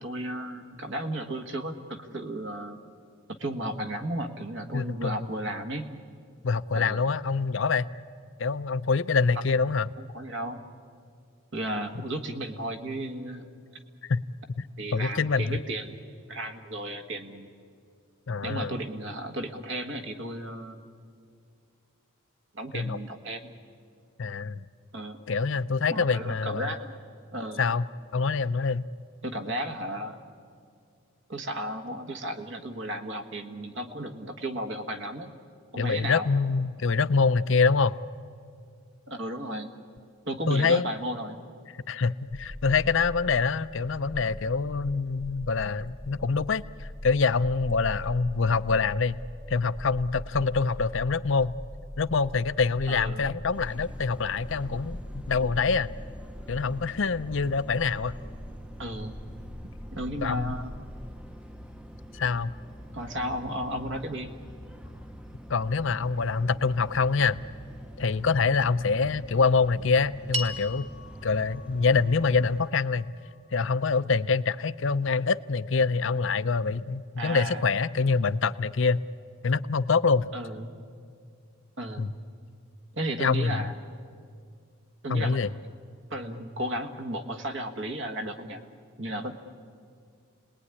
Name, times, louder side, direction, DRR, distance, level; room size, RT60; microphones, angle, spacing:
voice 1, 0.0-2.8 3.3-5.9 6.7-7.0 10.1-10.6 11.5-13.5 14.8-16.0 16.3-17.5 18.4-20.8 22.5-23.5 24.9-25.2 25.9-26.9 27.3-27.6 29.2-30.2 31.3-35.3 35.7-36.3 39.1-39.7 40.3-41.4 52.9-53.4 58.8-59.2 59.9-60.7 62.9-64.3 77.2-77.6 80.3-80.7 81.8-82.1 82.9-83.7 85.0-85.5 86.1-88.6 89.0-89.3, right 1 dB, 55° right, 5 dB, 1.5 m, -34 dB
voice 2, 4.7-5.1 6.4-7.9 8.4-9.9 14.0-14.2 14.6-14.7 14.9-15.6 18.3-18.7 22.7-23.0 24.2-24.7 25.3-26.7 27.6-27.8 28.1-28.8 35.8-37.9 40.5-40.9 41.9-49.2 49.5-51.5 52.0-55.9 56.5-58.1 60.2-60.6 62.1-62.5 65.5-67.4 68.0-70.9 71.2-73.1 73.5-79.0 79.4-80.3 82.0-82.1 83.2-83.6 85.1-85.5, left 4 dB, 60° left, 15 dB, 0.6 m, -25 dB
sound 1, 42.3-61.2, left 1 dB, 20° left, 0.9 m, -42 dB
sound 2, 53.5-72.7, equal, 5° right, 0.7 m, -45 dB
sound 3, 70.3-74.8, equal, 30° right, 1.3 m, -40 dB
29.5 x 19.5 x 9.8 m, 2.3 s
head